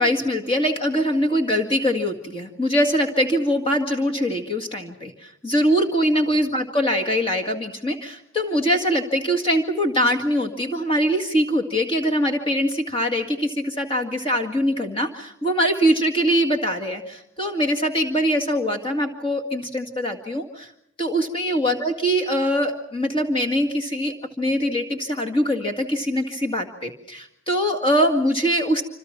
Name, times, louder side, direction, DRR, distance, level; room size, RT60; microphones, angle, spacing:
voice 1, 0.0-20.7 21.0-28.8, equal, 25° left, 4 dB, 2.1 m, -23 dB
27.0 x 27.0 x 6.0 m, 0.75 s
head